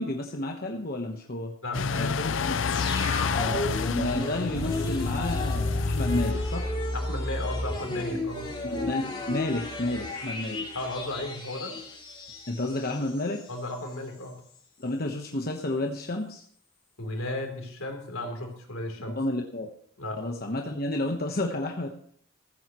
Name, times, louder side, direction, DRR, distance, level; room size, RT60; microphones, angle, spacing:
voice 1, 0.0-1.5 1.9-2.5 3.3-6.8 8.6-10.6 12.5-13.4 14.8-16.4 19.2-19.7 20.2-21.9, left 2 dB, 45° left, 2 dB, 1.2 m, -31 dB
voice 2, 1.6-2.4 6.9-8.5 10.7-11.7 13.5-14.4 17.0-19.2 20.0-20.2, left 1 dB, 80° left, 3 dB, 3.4 m, -35 dB
sound 1, 1.7-6.8, left 5 dB, 60° left, 0.5 m, -29 dB
sound 2, 2.7-13.5 13.8-13.9, left 1 dB, 25° left, 2.9 m, -33 dB
15.5 x 14.0 x 3.1 m, 0.62 s
head